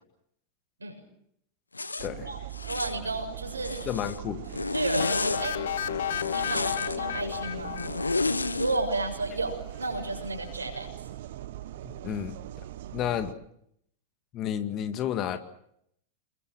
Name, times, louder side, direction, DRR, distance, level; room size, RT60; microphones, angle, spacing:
Zipper (clothing), 1.7-2.1 2.5-3.0 3.5-4.2 4.5-5.4 6.1-7.0 7.8-8.8, left 3 dB, 80° left, 1.1 m, -31 dB
sound 1, 2.0-13.3, right 13 dB, 55° right, 1.0 m, -41 dB
voice 1, 2.6-3.9 4.7-5.6 6.3-7.8 8.6-11.1, right 2 dB, 75° right, 3 dB, 6.7 m, -32 dB
voice 2, 3.9-4.4 11.8-12.4 12.9-13.3 14.3-15.4, left 10 dB, 35° left, 9 dB, 2.0 m, -31 dB
sound 2, 5.0-8.8, left 9 dB, 60° left, 1.1 m, -33 dB
29.0 x 22.5 x 6.2 m, 0.73 s
figure-of-eight pair, 90°, 0 cm